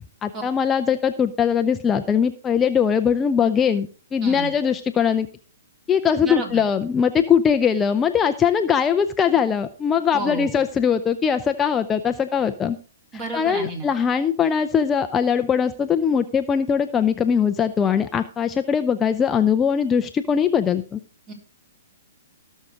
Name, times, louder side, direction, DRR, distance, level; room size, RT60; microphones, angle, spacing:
voice 1, 0.2-5.3 5.9-12.8 13.3-21.0, left 7 dB, 15° left, 7 dB, 0.6 m, -21 dB
voice 2, 6.2-6.6 10.1-10.6 13.1-13.9 21.3-21.4, right 2 dB, 30° right, 3 dB, 3.7 m, -31 dB
18.0 x 6.5 x 3.7 m, 0.39 s
hypercardioid pair, 130°, 0 cm